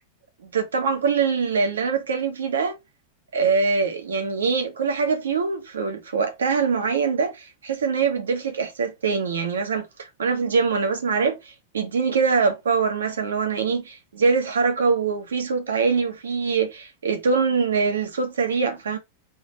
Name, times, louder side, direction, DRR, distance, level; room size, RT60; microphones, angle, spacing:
voice 1, 0.4-2.8 3.3-19.0, right 5 dB, 70° right, 1.2 m, -23 dB
3.6 x 3.0 x 4.2 m
figure-of-eight pair, 90°, 0 cm